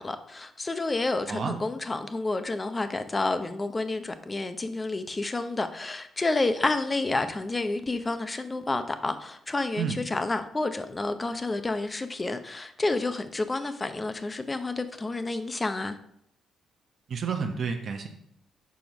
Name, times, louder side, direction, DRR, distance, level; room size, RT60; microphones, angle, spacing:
voice 1, 0.0-16.0, left 2 dB, 25° left, 0.7 m, -29 dB
voice 2, 17.1-18.1, right 6 dB, 55° right, 0.9 m, -30 dB
7.1 x 4.5 x 5.2 m
cardioid pair, 90°, 0 cm